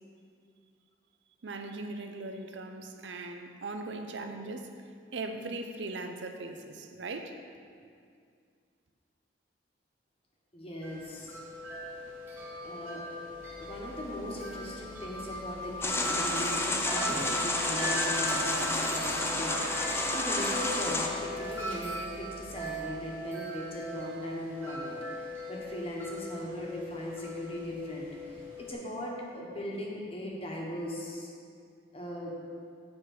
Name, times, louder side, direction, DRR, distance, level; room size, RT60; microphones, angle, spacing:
voice 1, 1.4-7.4, right 2 dB, 75° right, 6 dB, 0.6 m, -39 dB
voice 2, 10.5-11.4 12.6-13.0 13.6-31.3 31.9-32.4, left 1 dB, 30° left, -2 dB, 1.2 m, -39 dB
Wind chime, 10.8-28.7, equal, 10° right, 1.5 m, -39 dB
Dog, 13.3-23.2, right 1 dB, 30° right, 1.3 m, -46 dB
sound 1, 15.8-21.1, left 2 dB, 15° left, 0.5 m, -30 dB
8.2 x 5.0 x 6.5 m, 2.2 s
head